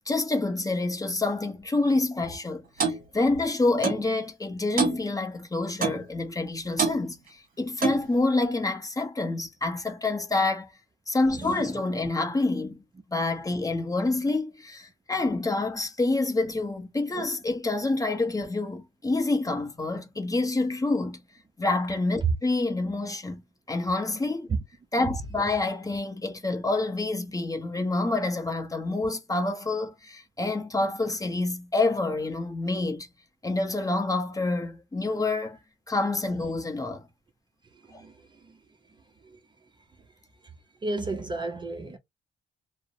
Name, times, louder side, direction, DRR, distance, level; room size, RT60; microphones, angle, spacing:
voice 1, 0.1-10.7 11.1-12.8 13.1-21.2 21.6-23.4 23.7-24.5 24.9-33.1 33.4-35.6 35.9-37.1 37.9-38.0, left 2 dB, 15° left, 0.7 m, -27 dB
Clock, 2.8-3.0 3.8-4.0 4.8-5.0 5.8-6.1 6.8-7.0 7.8-8.1, right 5 dB, 45° right, 1.2 m, -26 dB
voice 2, 40.8-42.0, right 2 dB, 25° right, 0.5 m, -33 dB
2.6 x 2.0 x 2.6 m
cardioid pair, 90°, 20 cm